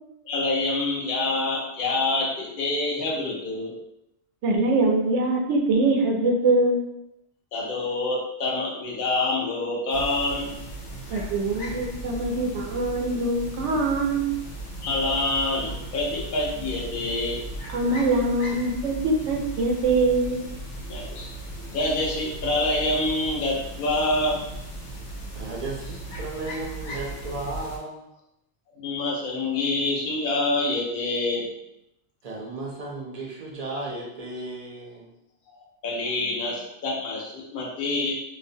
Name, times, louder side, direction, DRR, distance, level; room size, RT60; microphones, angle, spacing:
voice 1, 0.3-3.7 7.5-10.5 14.8-17.4 20.9-21.3 21.7-24.4 25.8-26.0 28.8-31.5 35.5-38.1, left 2 dB, 55° left, -3 dB, 0.7 m, -26 dB
voice 2, 4.4-6.8 11.1-14.3 17.7-20.4, right 2 dB, 90° right, 0 dB, 0.9 m, -23 dB
sound 1, 9.9-27.8, right 1 dB, 85° left, 1.0 m, -37 dB
voice 3, 25.3-28.1 32.2-35.1, right 2 dB, 60° right, -3 dB, 0.4 m, -35 dB
2.5 x 2.0 x 2.6 m, 0.84 s
omnidirectional pair, 1.2 m